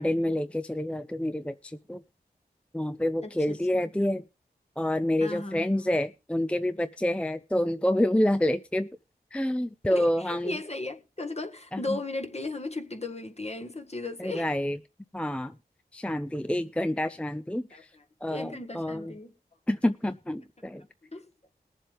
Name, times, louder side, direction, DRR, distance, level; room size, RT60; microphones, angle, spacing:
voice 1, 0.0-2.0 2.7-4.2 4.8-8.9 9.3-10.6 11.7-12.0 14.2-14.8 15.1-15.5 15.9-17.9 18.2-19.1 19.7-20.8, left 1 dB, 5° left, 0.5 m, -28 dB
voice 2, 3.2-3.6 5.2-6.0 9.8-14.5 17.7-19.3 21.1-21.3, left 2 dB, 40° left, 1.7 m, -36 dB
21.0 x 7.4 x 3.4 m
cardioid pair, 45°, 17 cm